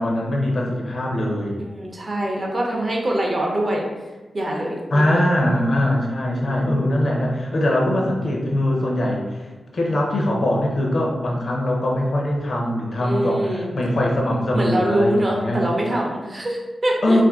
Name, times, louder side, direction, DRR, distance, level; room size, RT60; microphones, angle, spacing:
voice 1, 0.0-1.6 4.9-9.5 9.7-15.6 17.0-17.2, left 1 dB, 50° left, -1 dB, 0.6 m, -22 dB
voice 2, 1.8-3.8 4.3-5.3 6.4-6.9 13.0-13.7 14.5-17.2, right 1 dB, 35° right, -1 dB, 0.5 m, -24 dB
2.5 x 2.5 x 3.5 m, 1.2 s
wide cardioid pair, 155°, 0 cm